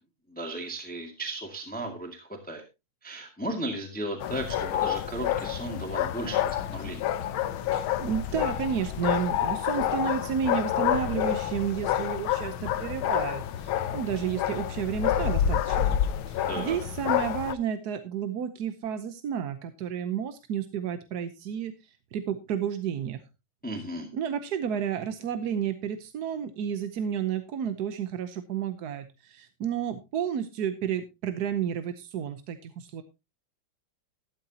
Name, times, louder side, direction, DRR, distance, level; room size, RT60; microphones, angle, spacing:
voice 1, 0.3-2.6 3.0-7.1 16.5-16.8 23.6-24.1, right 1 dB, 5° left, 3 dB, 1.9 m, -35 dB
sound 1, 4.2-17.5, left 11 dB, 70° left, 1.6 m, -28 dB
voice 2, 7.6-16.0 16.3-23.2 24.1-33.0, right 8 dB, 60° right, 10 dB, 1.1 m, -31 dB
13.0 x 12.5 x 2.8 m, 0.25 s
omnidirectional pair, 2.4 m